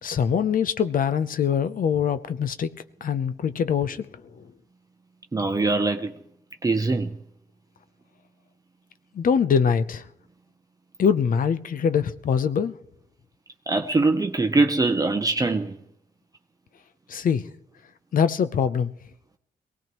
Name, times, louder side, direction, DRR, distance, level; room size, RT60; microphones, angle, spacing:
voice 1, 0.0-2.7 3.0-4.1 4.4-4.5 9.1-10.1 11.0-12.7 17.1-17.5 18.1-18.9, left 7 dB, 60° left, 0.8 m, -23 dB
voice 2, 5.3-6.1 6.6-7.1 13.7-15.8, right 3 dB, 25° right, 0.8 m, -22 dB
22.5 x 18.0 x 3.1 m
cardioid pair, 110°, 16 cm